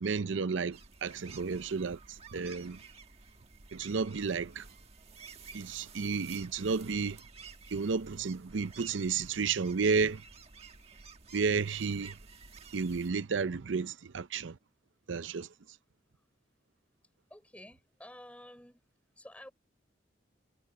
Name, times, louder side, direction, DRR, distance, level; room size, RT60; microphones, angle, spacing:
voice 1, 0.0-2.8 3.7-4.7 5.5-7.2 7.7-10.2 11.3-12.2 12.7-14.6 15.1-15.5, right 5 dB, 85° right, 0.6 m, -32 dB
sound 1, 0.7-13.1, right 5 dB, 35° right, 1.4 m, -52 dB
voice 2, 17.3-18.8 19.2-19.5, left 1 dB, 5° left, 5.3 m, -51 dB
head